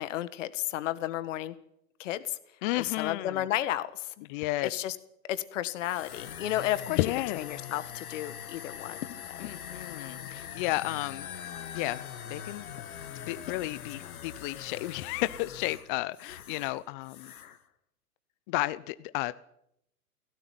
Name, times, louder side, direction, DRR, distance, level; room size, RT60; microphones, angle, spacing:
voice 1, 0.0-1.5 2.0-2.4 2.8-4.3 4.6-5.0 5.3-7.0 7.4-9.5 10.2-10.3 12.6-12.9 14.0-14.2, left 13 dB, 55° left, 14 dB, 1.8 m, -33 dB
voice 2, 2.6-3.4 4.3-4.7 6.9-7.4 9.4-11.3 11.7-12.0 12.3-12.7 13.2-17.3 18.5-19.3, left 18 dB, 35° left, 16 dB, 0.8 m, -32 dB
sound 1, 5.8-16.8 17.0-17.6, left 9 dB, 70° left, 2.2 m, -42 dB
17.5 x 16.5 x 9.6 m, 0.78 s
hypercardioid pair, 125°, 45 cm